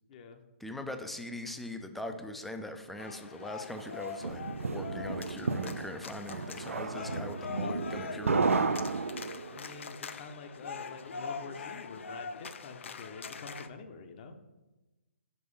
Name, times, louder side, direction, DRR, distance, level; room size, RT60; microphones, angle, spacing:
voice 1, 0.1-0.4 9.5-14.4, left 4 dB, 40° left, 7 dB, 0.8 m, -47 dB
voice 2, 0.6-4.4 4.7-8.8, left 1 dB, ahead, 6 dB, 0.5 m, -41 dB
sound 1, 3.0-13.7, left 5 dB, 65° left, 0.6 m, -42 dB
sound 2, 3.8-9.6, right 4 dB, 85° right, 0.4 m, -32 dB
5.8 x 5.5 x 5.4 m, 1.1 s
figure-of-eight pair, 135°, 7 cm